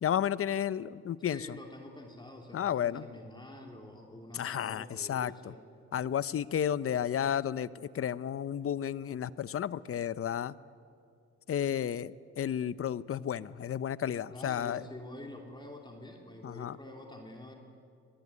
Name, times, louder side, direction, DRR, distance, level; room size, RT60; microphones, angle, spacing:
voice 1, 0.0-1.6 2.5-3.0 4.3-5.3 5.9-10.5 11.5-14.8 16.4-16.8, left 9 dB, 50° left, 17 dB, 0.8 m, -32 dB
voice 2, 1.2-5.6 14.3-17.5, left 1 dB, 15° left, 1 dB, 3.2 m, -47 dB
24.5 x 19.5 x 9.8 m, 2.4 s
cardioid pair, 90°, 30 cm